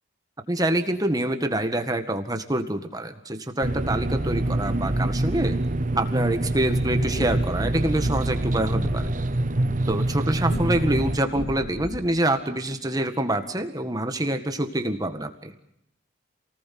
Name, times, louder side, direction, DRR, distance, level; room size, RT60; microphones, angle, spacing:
voice 1, 0.5-5.6 5.9-9.1 9.9-15.5, right 1 dB, 20° right, 7 dB, 1.8 m, -26 dB
sound 1, 3.6-11.2, right 1 dB, 40° right, 1.1 m, -25 dB
sound 2, 6.9-12.2, left 1 dB, 80° left, 2.3 m, -37 dB
28.5 x 19.0 x 7.7 m, 0.79 s
head